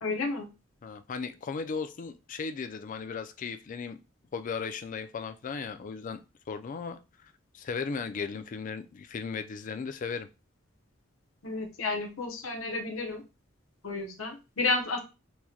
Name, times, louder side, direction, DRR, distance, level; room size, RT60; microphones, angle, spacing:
voice 1, 0.0-0.5 11.4-13.2 13.8-15.0, left 3 dB, 80° left, 1 dB, 0.8 m, -31 dB
voice 2, 0.8-4.0 4.3-6.2 6.5-7.0 7.5-10.3, left 5 dB, 40° left, 9 dB, 0.3 m, -36 dB
4.6 x 2.1 x 2.8 m, 0.29 s
head